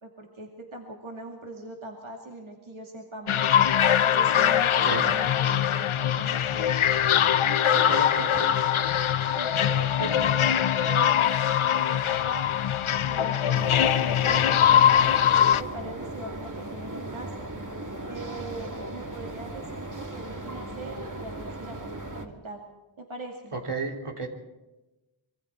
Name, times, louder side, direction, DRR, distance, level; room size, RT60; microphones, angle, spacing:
voice 1, 0.0-3.7 4.0-6.8 7.4-8.1 9.3-12.5 13.0-17.5 18.1-22.6 23.0-23.5, right 2 dB, 70° right, 1 dB, 2.6 m, -41 dB
sound 1, 3.3-15.6, left 9 dB, 75° left, 0.7 m, -22 dB
voice 2, 7.4-8.6 10.0-10.2 23.5-24.3, right 3 dB, 90° right, 1 dB, 3.4 m, -33 dB
sound 2, 13.5-22.3, right 1 dB, 35° right, 2.5 m, -37 dB
25.5 x 23.0 x 4.5 m, 1.1 s
wide cardioid pair, 55°, 50 cm